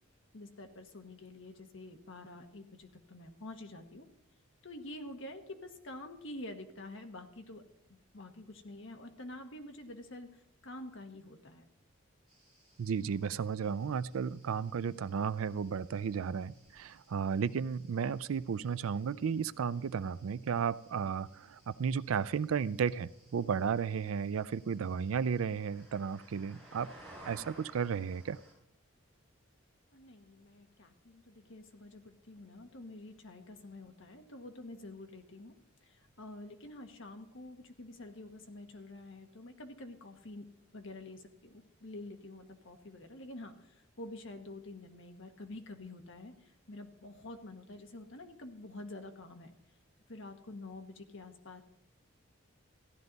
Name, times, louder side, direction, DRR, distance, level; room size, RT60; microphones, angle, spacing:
voice 1, 0.3-4.1 4.6-7.6 7.9-11.7 29.9-35.5 35.8-40.5 40.7-49.5 50.1-51.6, left 2 dB, 65° left, 5 dB, 1.3 m, -48 dB
sound 1, 12.3-28.5, right 1 dB, ahead, 5.0 m, -60 dB
voice 2, 12.8-26.9 27.2-28.4, right 6 dB, 75° right, 18 dB, 0.4 m, -34 dB
15.0 x 11.0 x 4.0 m, 0.78 s
head